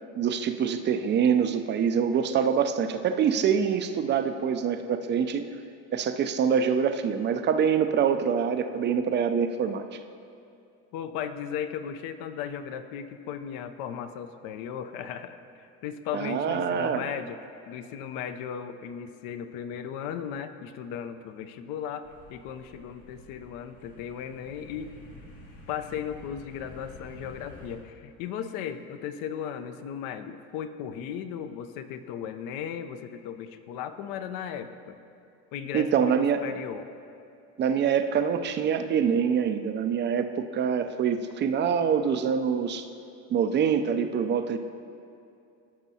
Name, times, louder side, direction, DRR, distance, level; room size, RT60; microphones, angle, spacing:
voice 1, 0.1-5.5 5.9-9.9 16.1-17.0 35.7-36.4 37.6-42.8 43.3-44.6, right 7 dB, 25° right, 8 dB, 0.4 m, -25 dB
voice 2, 10.9-17.4 17.7-24.9 25.7-35.0 35.5-36.9, left 8 dB, 55° left, 9 dB, 0.7 m, -36 dB
sound 1, 22.0-27.8, left 2 dB, 75° left, 2.2 m, -49 dB
14.5 x 6.0 x 2.8 m, 2.5 s
hypercardioid pair, 90°, 42 cm